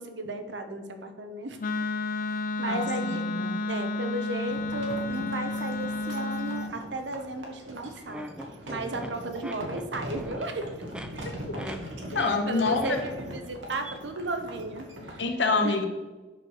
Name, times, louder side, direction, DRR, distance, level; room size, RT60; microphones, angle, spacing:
voice 1, 0.0-1.6 2.2-3.2 3.7-8.3 8.7-10.7 12.5-15.2 15.6-15.7, right 2 dB, 70° right, 7 dB, 1.1 m, -35 dB
Wind instrument woodwind instrument, 1.6-6.8, left 2 dB, 45° left, 0.6 m, -31 dB
voice 2, 2.7-3.6 12.1-13.0 15.2-15.9, left 3 dB, 70° left, 4 dB, 1.4 m, -26 dB
sound 1, 4.5-15.2, equal, 90° right, 2.1 m, -41 dB
sound 2, 8.1-10.5 10.8-11.1 11.5-11.8 12.1-12.4 12.7-13.5 13.8-14.0, right 1 dB, 5° right, 0.7 m, -39 dB
8.9 x 6.6 x 4.8 m, 1.2 s
head